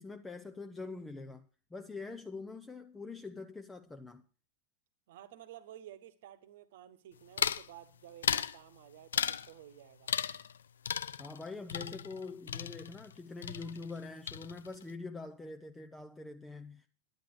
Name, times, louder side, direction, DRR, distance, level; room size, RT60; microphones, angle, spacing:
voice 1, 0.0-4.2 11.2-16.9, left 3 dB, 10° left, 0.8 m, -44 dB
voice 2, 5.1-10.1, right 12 dB, 55° right, 1.2 m, -53 dB
sound 1, 7.4-7.7 8.2-8.6 9.1-9.5 10.1-10.6 10.9-13.2 13.4-14.0 14.3-14.8, left 8 dB, 65° left, 0.5 m, -35 dB
10.5 x 10.0 x 6.8 m
figure-of-eight pair, 90°, 0 cm